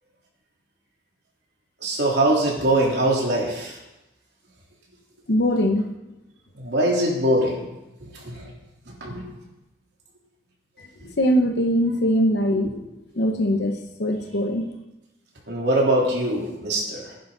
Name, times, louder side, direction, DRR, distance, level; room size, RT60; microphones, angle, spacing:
voice 1, 1.8-3.8 6.6-7.6 8.0-8.5 8.9-9.3 12.5-12.7 15.5-17.1, right 1 dB, 70° right, -3 dB, 3.5 m, -23 dB
voice 2, 5.3-5.8 11.2-12.7 13.2-14.7, equal, 70° left, 4 dB, 0.9 m, -21 dB
16.5 x 10.0 x 4.0 m, 0.98 s
head